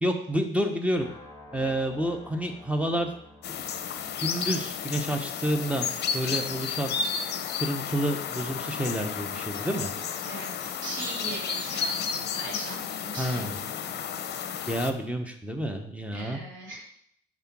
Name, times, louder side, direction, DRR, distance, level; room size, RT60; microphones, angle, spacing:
voice 1, 0.0-1.1 1.5-3.1 4.2-5.9 6.1-6.9 7.6-9.9 13.2-13.6 14.7-16.4, right 1 dB, 5° right, 5 dB, 0.9 m, -29 dB
sound 1, 1.0-6.9, left 2 dB, 15° left, 1.4 m, -51 dB
sound 2, 3.4-14.9, left 7 dB, 55° left, 0.6 m, -32 dB
voice 2, 10.3-13.4 16.1-16.8, right 2 dB, 75° right, -3 dB, 2.5 m, -39 dB
5.6 x 3.6 x 5.9 m, 0.68 s
cardioid pair, 90°, 20 cm